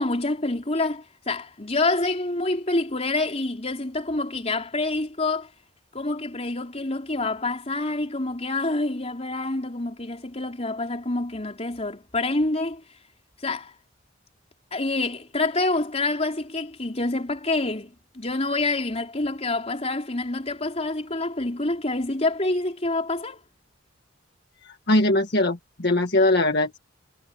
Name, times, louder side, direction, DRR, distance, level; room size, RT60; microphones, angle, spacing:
voice 1, 0.0-5.5 5.9-12.8 13.4-13.7 14.7-23.4, left 2 dB, 35° left, 3.9 m, -27 dB
voice 2, 24.9-26.8, left 2 dB, 60° left, 1.7 m, -21 dB
head